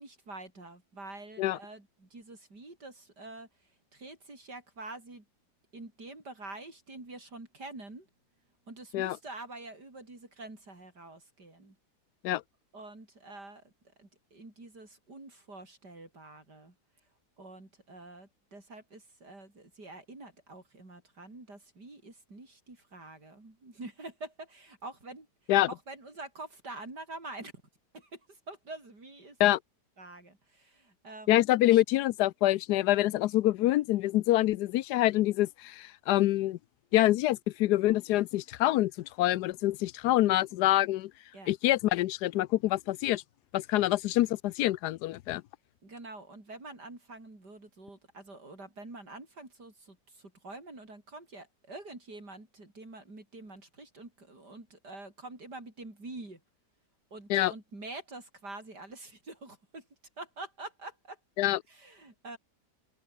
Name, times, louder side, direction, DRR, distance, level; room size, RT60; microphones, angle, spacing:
voice 1, 0.0-3.5 3.9-5.3 5.7-8.1 8.7-11.8 12.7-13.7 14.0-16.8 17.4-27.5 27.9-29.4 30.0-31.4 41.3-41.5 45.8-56.4 57.1-59.9 60.2-61.2 61.7-62.4, right 2 dB, 80° right, 6.9 m, -46 dB
voice 2, 31.3-36.6 36.9-41.1 41.5-43.2 43.5-45.4 57.3-57.5 61.4-61.6, left 15 dB, 80° left, 1.1 m, -26 dB
open air
omnidirectional pair, 1.8 m